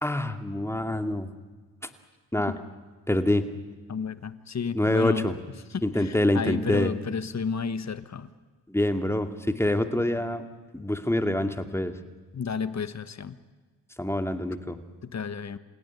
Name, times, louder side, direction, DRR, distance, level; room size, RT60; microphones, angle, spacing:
voice 1, 0.0-1.3 2.3-2.6 3.1-3.5 4.7-5.4 5.8-6.9 8.7-10.4 10.7-11.9 14.0-14.8, left 1 dB, 5° left, 8 dB, 2.3 m, -26 dB
voice 2, 3.9-5.2 5.7-8.3 12.3-13.4 15.1-15.6, left 6 dB, 40° left, 13 dB, 1.3 m, -32 dB
27.5 x 17.0 x 9.6 m, 1.4 s
supercardioid pair, 65°, 42 cm